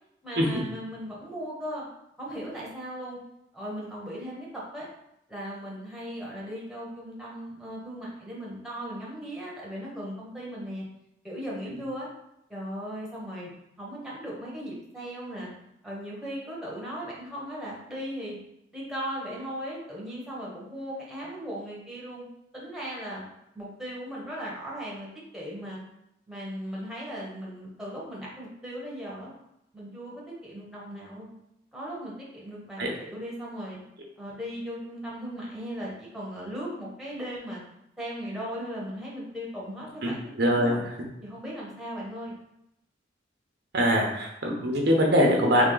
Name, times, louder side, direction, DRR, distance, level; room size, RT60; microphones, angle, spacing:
voice 1, 0.2-1.8 2.2-3.2 3.5-4.9 5.3-10.8 11.2-12.1 12.5-13.5 13.8-15.5 15.8-18.4 18.7-22.2 22.5-23.2 23.5-25.1 25.3-25.8 26.3-29.3 29.7-31.3 31.7-33.8 34.2-37.6 38.0-40.8 41.2-42.3, equal, 5° right, -5 dB, 1.2 m, -37 dB
voice 2, 40.0-40.8 43.7-45.7, equal, 65° right, 0 dB, 0.8 m, -23 dB
3.6 x 3.5 x 3.9 m, 0.81 s
head